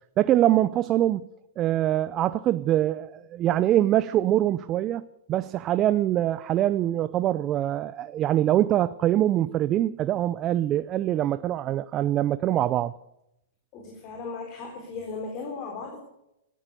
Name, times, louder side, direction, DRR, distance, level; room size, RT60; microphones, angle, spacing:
voice 1, 0.2-1.2 1.6-12.9, right 12 dB, 30° right, 0.5 m, -24 dB
voice 2, 13.7-16.0, left 4 dB, 40° left, 3.8 m, -36 dB
14.0 x 13.0 x 6.7 m
hypercardioid pair, 120°, 0 cm